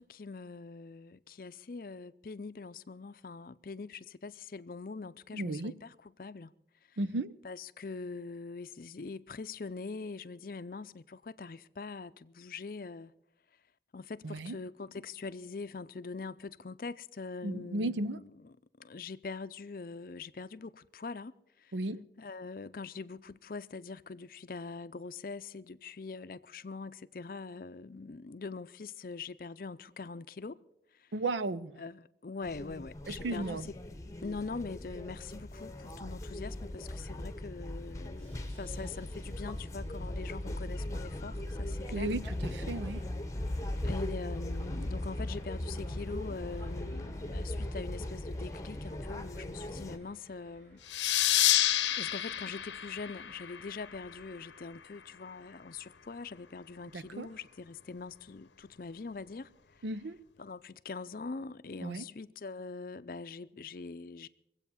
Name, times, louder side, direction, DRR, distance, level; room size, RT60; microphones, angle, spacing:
voice 1, 0.2-1.0 1.4-3.9 4.2-5.7 6.2-6.5 7.4-10.9 11.4-12.1 12.4-13.1 13.9-14.0 14.5-14.9 15.2-16.3 16.6-17.9 18.9-20.7 21.0-21.3 22.2-23.2 23.5-24.0 24.5-26.4 26.6-30.5 31.8-31.9 32.2-33.6 34.2-35.7 36.0-36.5 37.2-38.1 38.6-41.3 42.0-42.1 43.9-47.4 47.7-48.8 49.1-50.7 52.0-55.7 56.1-57.4 57.9-58.4 58.8-59.4 60.4-60.6 60.9-64.3, left 4 dB, 50° left, 0.5 m, -42 dB
voice 2, 5.3-5.7 7.0-7.3 14.2-14.6 17.4-18.2 21.7-22.0 31.1-31.7 33.1-33.7 41.9-43.0 56.9-57.3 59.8-60.2 61.8-62.0, right 2 dB, 90° right, 0.7 m, -34 dB
sound 1, 32.4-50.0, left 1 dB, 15° left, 0.9 m, -38 dB
Subway metro underground, 36.4-54.3, equal, 40° right, 7.5 m, -60 dB
sound 2, 50.9-54.1, left 13 dB, 90° left, 0.8 m, -29 dB
22.0 x 8.3 x 7.0 m
head